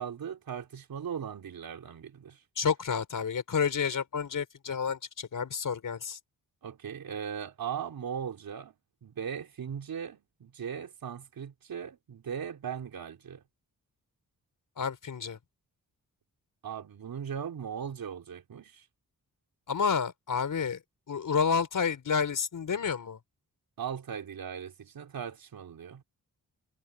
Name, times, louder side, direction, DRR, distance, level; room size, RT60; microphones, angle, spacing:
voice 1, 0.0-2.4 6.6-8.7 9.0-13.4 16.6-18.8 23.8-26.0, right 8 dB, 80° right, 3.9 m, -38 dB
voice 2, 2.6-6.2 14.8-15.4 19.7-20.8 21.1-23.2, left 6 dB, 65° left, 4.5 m, -30 dB
wide cardioid pair, 115°, 35 cm